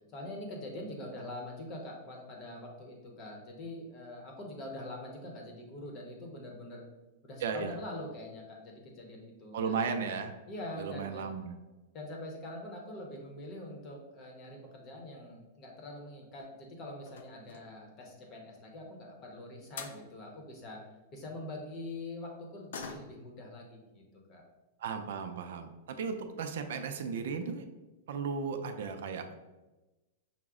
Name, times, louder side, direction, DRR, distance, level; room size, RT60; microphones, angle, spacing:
voice 1, 0.1-6.9 7.2-10.0 10.5-11.4 11.9-20.8 21.1-24.0 24.3-24.4, left 1 dB, 25° left, 1 dB, 0.8 m, -44 dB
voice 2, 7.4-7.7 9.5-10.3 10.8-11.5 24.8-27.7 28.1-29.3, right 5 dB, 65° right, 6 dB, 0.5 m, -35 dB
sound 1, 16.2-16.4 17.0-17.9 19.4-19.5 19.8-20.0 22.7-23.4 23.7-23.8 24.2-24.4 25.2-25.3 25.6-25.7 26.1-26.4 26.7-26.8 27.1-27.2, left 5 dB, 75° left, 0.5 m, -46 dB
5.7 x 2.0 x 3.6 m, 1.1 s
supercardioid pair, 165°, 0 cm